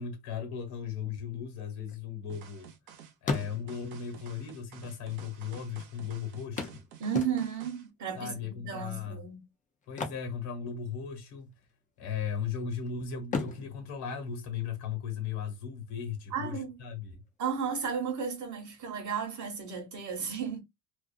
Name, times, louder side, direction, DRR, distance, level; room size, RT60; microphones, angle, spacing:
voice 1, 0.0-2.7 3.2-6.7 8.1-9.2 9.9-11.5 12.0-17.2, left 7 dB, 60° left, 1.1 m, -37 dB
sound 1, 1.5-2.8 3.1-4.0 4.9-5.0 5.2-5.3 6.6-7.8 9.8-11.1 11.4-11.6 12.1-12.8 13.2-15.0 17.0-17.1 17.5-17.6, left 4 dB, 20° left, 0.4 m, -37 dB
sound 2, 2.3-7.9, right 9 dB, 85° right, 0.9 m, -51 dB
voice 2, 7.0-9.4 16.3-16.7 17.4-20.6, right 7 dB, 40° right, 0.9 m, -34 dB
2.5 x 2.3 x 2.4 m
cardioid pair, 135°, 44 cm